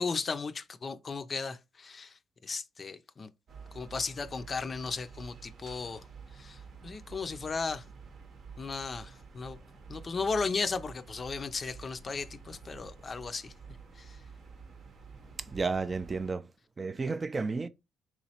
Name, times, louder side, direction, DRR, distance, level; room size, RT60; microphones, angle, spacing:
voice 1, 0.0-3.3 3.7-6.1 6.3-7.8 8.6-9.6 9.9-13.5 14.0-14.2, left 4 dB, 40° left, 0.4 m, -35 dB
sound 1, 3.5-16.4, right 5 dB, 55° right, 0.8 m, -50 dB
voice 2, 15.5-16.5 16.8-17.7, right 4 dB, 30° right, 0.4 m, -32 dB
3.8 x 3.0 x 2.8 m
cardioid pair, 90°, 0 cm